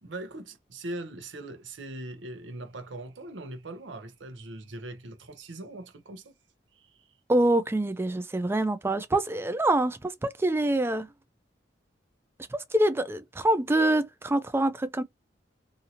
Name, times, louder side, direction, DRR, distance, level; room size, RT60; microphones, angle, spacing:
voice 1, 0.0-6.3 6.7-7.1, right 2 dB, 80° right, 0.7 m, -41 dB
voice 2, 7.3-11.1 12.5-15.0, right 1 dB, 15° right, 0.3 m, -25 dB
2.7 x 2.6 x 2.8 m
head